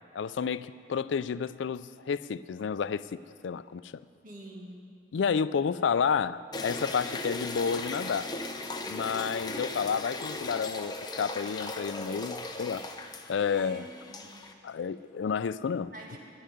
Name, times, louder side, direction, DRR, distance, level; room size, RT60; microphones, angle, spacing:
voice 1, 0.1-3.9 5.1-8.3 8.9-12.9 13.3-13.8 14.6-15.9, left 6 dB, 85° left, 16 dB, 0.4 m, -30 dB
voice 2, 4.2-4.9 13.4-14.3 15.9-16.2, right 1 dB, 45° right, -1 dB, 2.0 m, -46 dB
sound 1, 6.5-14.5, left 2 dB, 20° left, 0.8 m, -38 dB
11.0 x 10.5 x 9.1 m, 2.3 s
head